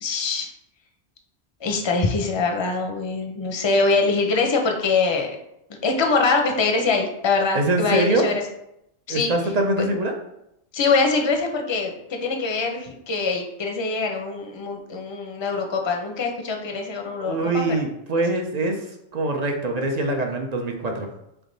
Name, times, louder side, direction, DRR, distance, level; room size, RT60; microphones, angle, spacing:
voice 1, 0.0-0.5 1.6-5.4 5.7-8.4 9.1-9.3 9.8-9.9 10.7-17.5, left 4 dB, 35° left, 3 dB, 0.5 m, -23 dB
voice 2, 7.5-8.4 9.1-10.1 17.2-18.8 19.1-21.1, right 2 dB, 50° right, 2 dB, 0.5 m, -23 dB
3.8 x 3.5 x 3.9 m, 0.82 s
omnidirectional pair, 1.1 m